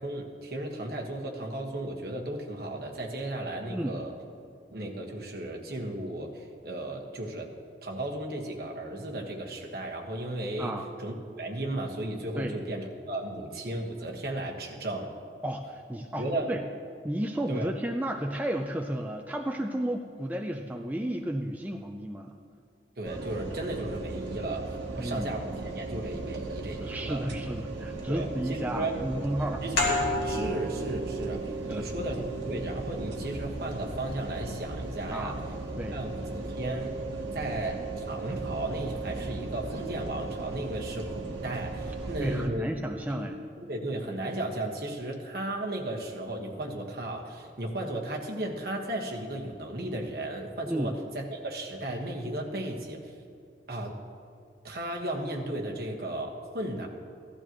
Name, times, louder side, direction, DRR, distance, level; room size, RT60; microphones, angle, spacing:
voice 1, 0.0-4.1 4.7-7.5 7.8-10.7 11.0-15.1 16.2-16.5 17.5-17.7 23.0-27.2 28.1-29.0 29.6-29.9 30.2-35.4 35.9-37.0 37.3-37.8 38.1-42.7 43.1-43.2 43.6-53.1 53.7-54.0 54.6-56.9, right 1 dB, 55° right, 0 dB, 1.5 m, -35 dB
voice 2, 15.4-16.6 17.0-22.3 25.0-25.3 26.8-29.6 31.7-31.8 35.1-35.4 35.8-36.0 42.2-43.4 50.7-51.0, right 1 dB, 10° right, 2 dB, 0.4 m, -32 dB
sound 1, 23.0-42.5, right 3 dB, 90° right, 1.2 m, -37 dB
sound 2, 29.8-35.0, left 2 dB, 60° left, 2.0 m, -34 dB
15.5 x 12.0 x 3.0 m, 2.4 s
head